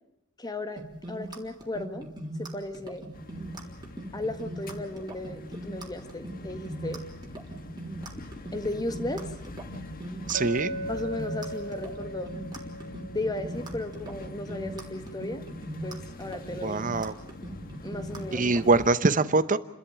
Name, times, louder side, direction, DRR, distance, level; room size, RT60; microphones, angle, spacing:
voice 1, 0.4-0.8 1.1-2.1 2.4-3.0 4.1-7.0 8.5-9.2 10.9-12.4 13.1-15.4 15.8-16.8 17.8-18.5, left 2 dB, 20° left, 8 dB, 1.6 m, -35 dB
sound 1, 0.8-18.7, right 1 dB, 20° right, 3.5 m, -40 dB
sound 2, 3.1-19.0, left 2 dB, 40° left, 1.4 m, -44 dB
voice 2, 10.3-10.7 16.6-17.1 18.3-19.6, right 3 dB, 40° right, 13 dB, 0.9 m, -23 dB
Chink clink, 10.3-14.4, right 1 dB, 65° right, 2.3 m, -38 dB
29.5 x 13.5 x 9.0 m, 0.83 s
head